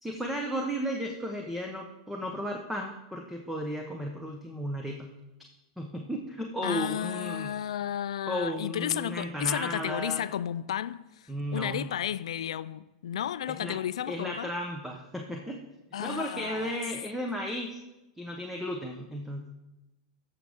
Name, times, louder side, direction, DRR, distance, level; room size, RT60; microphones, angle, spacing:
voice 1, 0.0-5.1 5.8-7.5 8.3-10.3 11.3-11.9 13.5-13.8 14.1-15.6 16.0-17.8 18.2-19.5, equal, 5° right, 0.9 m, -34 dB
voice 2, 6.6-14.5 15.9-16.8, left 10 dB, 85° left, 0.3 m, -33 dB
14.0 x 6.5 x 3.5 m
hypercardioid pair, 120°, 3 cm